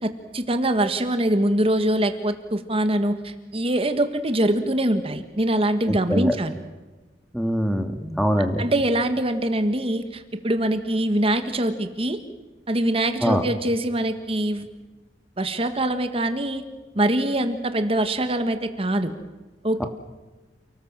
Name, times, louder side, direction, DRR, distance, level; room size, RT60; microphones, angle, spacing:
voice 1, 0.0-6.6 8.6-12.2 12.7-14.7 15.4-16.6 16.9-19.1 19.6-19.9, right 1 dB, 35° right, 8 dB, 1.6 m, -23 dB
voice 2, 5.9-6.3 7.3-8.6 13.2-13.4 19.8-19.9, equal, ahead, 6 dB, 1.8 m, -23 dB
30.0 x 18.5 x 7.5 m, 1.2 s
head